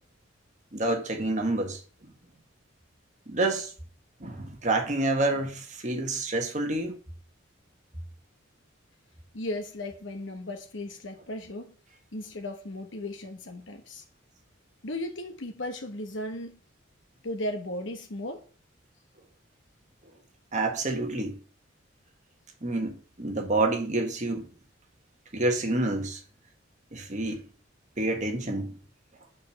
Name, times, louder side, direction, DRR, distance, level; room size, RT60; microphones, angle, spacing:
voice 1, 0.7-1.8 3.3-3.7 4.2-6.9 20.5-21.4 22.6-24.5 25.3-26.2 26.9-27.4 28.0-28.7, right 2 dB, 40° right, 1.5 m, -28 dB
voice 2, 9.3-11.7 12.1-14.0 14.8-16.6 17.2-18.4, left 1 dB, 70° left, 1.1 m, -36 dB
6.2 x 5.0 x 6.5 m
head